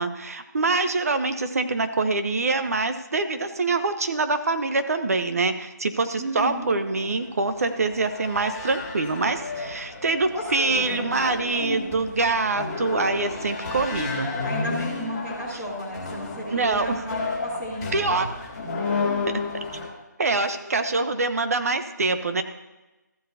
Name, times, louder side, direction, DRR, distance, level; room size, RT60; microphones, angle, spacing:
voice 1, 0.0-14.3 15.5-15.6 16.5-17.0 17.9-18.3 19.3-19.4 20.2-22.4, right 3 dB, 50° right, 8 dB, 1.0 m, -25 dB
voice 2, 6.1-6.7 10.3-10.7 11.6-11.8 13.9-14.1 14.4-18.2 20.4-20.7, equal, 10° right, -8 dB, 2.6 m, -33 dB
sound 1, 6.4-19.9, left 3 dB, 25° left, 2.2 m, -32 dB
15.0 x 7.5 x 2.8 m, 1.1 s
figure-of-eight pair, 165°, 10 cm